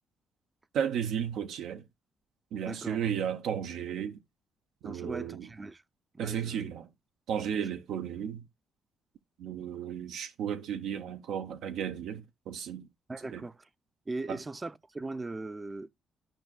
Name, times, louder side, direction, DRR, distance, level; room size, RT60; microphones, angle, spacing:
voice 1, 0.7-1.8 2.5-4.2 4.8-5.5 6.2-6.9 7.3-8.4 9.4-12.9 13.3-13.4 14.3-14.4, right 8 dB, 80° right, 0.6 m, -34 dB
voice 2, 2.7-3.0 4.8-5.8 6.1-6.7 7.5-7.6 13.1-13.7 14.1-15.9, right 2 dB, 20° right, 0.4 m, -39 dB
12.0 x 5.2 x 2.2 m
cardioid pair, 90°, 0 cm